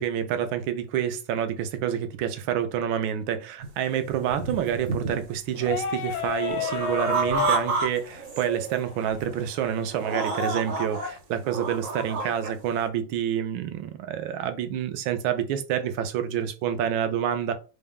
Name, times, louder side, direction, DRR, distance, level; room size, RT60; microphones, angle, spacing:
voice 1, 0.0-17.5, right 9 dB, 90° right, 1.4 m, -28 dB
sound 1, 3.6-3.7 4.2-5.3 5.6-7.9 8.1-8.8 9.2-9.4 9.9-11.1 11.4-12.5, right 4 dB, 70° right, 1.6 m, -30 dB
sound 2, 5.6-11.2, left 7 dB, 80° left, 1.2 m, -34 dB
4.4 x 2.1 x 3.5 m
omnidirectional pair, 2.1 m